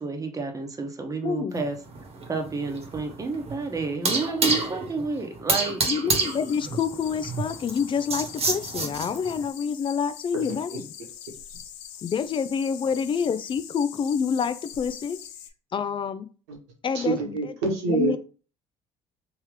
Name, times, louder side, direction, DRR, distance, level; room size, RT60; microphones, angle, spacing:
voice 1, 0.0-1.8 2.3-5.8, right 4 dB, 25° right, 4 dB, 1.0 m, -30 dB
voice 2, 1.2-1.6 5.9-10.9 12.0-15.2 15.7-16.3 16.8-17.5 17.9-18.2, left 6 dB, 35° left, 12 dB, 0.4 m, -27 dB
sound 1, 1.6-9.4, right 3 dB, 45° right, 1.2 m, -29 dB
sound 2, 6.1-15.5, left 10 dB, 85° left, 0.6 m, -43 dB
voice 3, 10.3-10.8 16.5-16.6 16.9-18.2, right 3 dB, 90° right, 1 dB, 1.3 m, -27 dB
3.6 x 2.9 x 3.2 m, 0.37 s
supercardioid pair, 75°, 14 cm